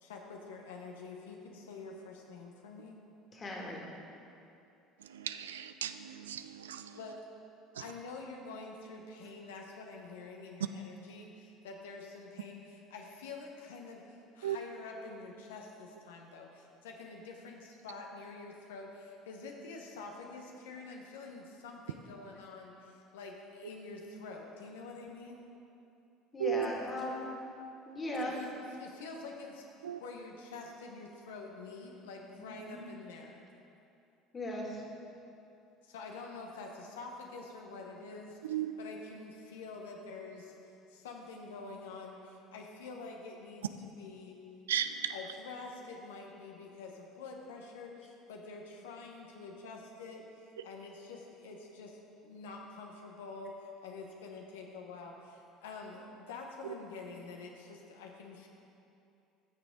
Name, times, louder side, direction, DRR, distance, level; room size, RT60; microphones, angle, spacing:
voice 1, 0.0-3.0 6.9-7.2 7.7-25.5 26.8-26.9 28.2-29.7 30.0-33.4 35.8-44.4 45.1-58.5, left 3 dB, 75° left, 1 dB, 1.0 m, -47 dB
voice 2, 3.3-3.8 26.3-27.3 27.9-28.4 32.4-32.8 34.3-34.8, left 2 dB, 30° left, -2 dB, 2.2 m, -38 dB
voice 3, 5.1-6.9 14.4-14.6 26.4-26.7 28.1-28.2 29.8-30.0 38.5-38.7 44.7-45.1, right 11 dB, 80° right, 10 dB, 0.3 m, -35 dB
13.5 x 7.0 x 3.8 m, 2.7 s
hypercardioid pair, 65°, 0 cm